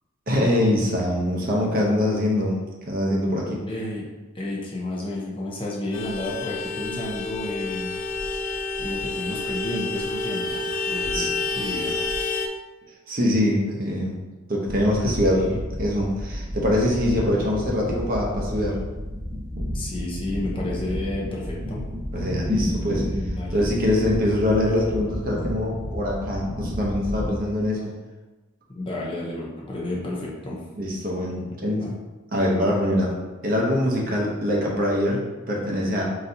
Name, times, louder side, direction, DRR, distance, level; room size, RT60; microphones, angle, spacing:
voice 1, 0.3-2.6 2.9-3.6 11.1-11.3 13.1-14.2 14.5-18.8 22.1-23.0 23.5-27.9 30.8-31.9 32.3-33.1 33.4-36.0, left 1 dB, 45° right, -2 dB, 0.8 m, -23 dB
voice 2, 3.7-4.1 4.3-7.9 8.4-12.0 19.7-21.8 23.1-23.6 27.2-27.3 28.7-30.6 31.8-31.9, left 1 dB, 25° left, -4 dB, 0.7 m, -31 dB
Vehicle horn car horn honking, 5.9-12.5, left 3 dB, 80° left, 0.4 m, -29 dB
sound 1, 14.6-27.3, equal, 15° right, 1.2 m, -31 dB
3.9 x 3.9 x 2.7 m, 1.2 s
head